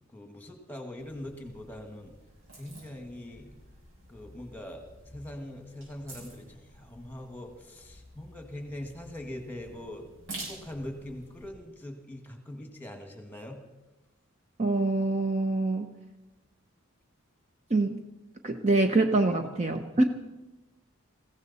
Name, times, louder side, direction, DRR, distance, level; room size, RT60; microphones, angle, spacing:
voice 1, 0.1-2.1 2.5-3.6 4.1-10.1 10.3-13.6, left 1 dB, 10° left, 5 dB, 1.8 m, -42 dB
sound 1, 1.0-11.5, right 2 dB, 70° right, 7.2 m, -49 dB
voice 2, 14.6-15.9 17.7-18.0 18.4-20.0, right 2 dB, 35° right, 6 dB, 0.7 m, -25 dB
21.0 x 15.5 x 4.2 m, 1.0 s
head